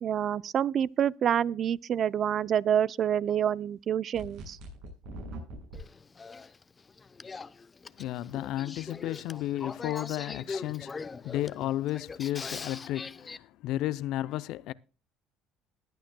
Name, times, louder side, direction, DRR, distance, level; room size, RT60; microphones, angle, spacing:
voice 1, 0.0-4.6, right 9 dB, 50° right, 0.4 m, -27 dB
sound 1, 4.1-5.8, right 2 dB, 80° right, 7.7 m, -42 dB
Male speech man speaking / Female speech woman speaking / Conversation, 5.7-13.4, left 4 dB, 25° left, 0.7 m, -42 dB
voice 2, 8.0-14.7, left 14 dB, 70° left, 0.5 m, -33 dB
20.5 x 9.1 x 2.2 m
supercardioid pair, 95°, 0 cm